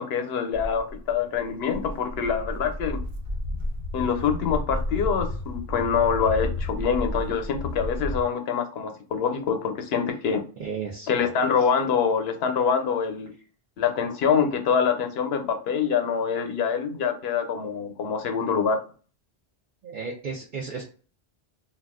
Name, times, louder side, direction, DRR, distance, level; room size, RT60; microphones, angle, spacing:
voice 1, 0.0-3.0 3.9-10.4 11.1-13.3 13.8-18.8, left 6 dB, 80° left, 6 dB, 0.8 m, -25 dB
Walk footsteps, 0.5-8.2, left 1 dB, 80° right, 1.0 m, -32 dB
voice 2, 10.6-11.3 19.8-20.8, right 5 dB, 55° right, -3 dB, 0.7 m, -34 dB
2.3 x 2.3 x 3.5 m, 0.40 s
omnidirectional pair, 1.0 m